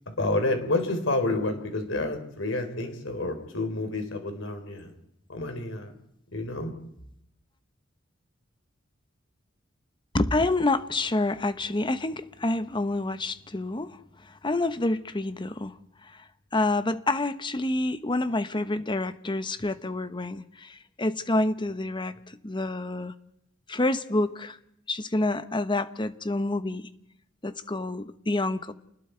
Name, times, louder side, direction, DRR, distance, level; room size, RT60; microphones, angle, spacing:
voice 1, 0.1-4.9 5.3-5.9 6.3-6.7, left 2 dB, 70° left, 6 dB, 3.8 m, -29 dB
voice 2, 10.1-15.8 16.0-16.2 16.5-23.1 23.7-24.6 24.9-26.9 27.4-28.7, left 2 dB, 25° left, 12 dB, 1.0 m, -28 dB
28.5 x 20.0 x 4.6 m, 0.76 s
head